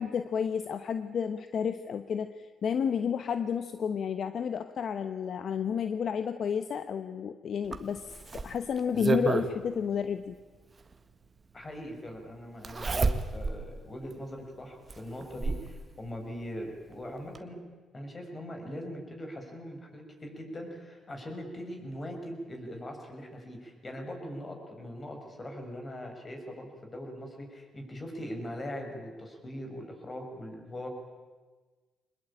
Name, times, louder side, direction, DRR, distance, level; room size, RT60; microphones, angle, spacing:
voice 1, 0.0-10.4, left 7 dB, 60° left, 10 dB, 1.0 m, -31 dB
Zipper (clothing), 7.7-9.5 10.9-11.0 12.6-13.6 14.1-14.2 14.9-15.7 16.9-17.0 17.3-17.4, right 4 dB, 30° right, 1.7 m, -30 dB
voice 2, 11.5-17.6 17.9-30.9, equal, 30° left, 3 dB, 6.5 m, -41 dB
24.5 x 20.5 x 8.8 m, 1.4 s
cardioid pair, 90°, 0 cm